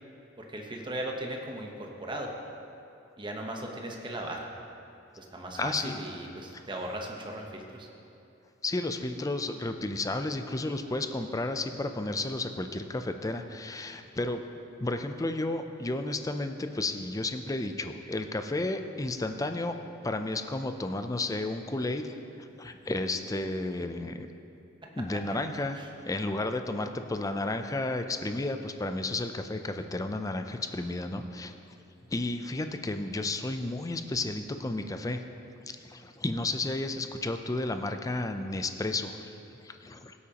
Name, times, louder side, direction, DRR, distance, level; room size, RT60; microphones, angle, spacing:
voice 1, 0.4-2.3 3.2-4.4 5.2-7.9 25.7-25.9, right 1 dB, 25° right, 1 dB, 1.0 m, -37 dB
voice 2, 5.5-6.0 6.5-6.7 8.6-14.4 14.8-19.8 20.0-24.3 25.0-31.5 32.1-35.2 35.7-39.3 39.6-40.1, left 2 dB, 15° left, 7 dB, 0.4 m, -32 dB
16.0 x 8.4 x 2.9 m, 2.9 s
head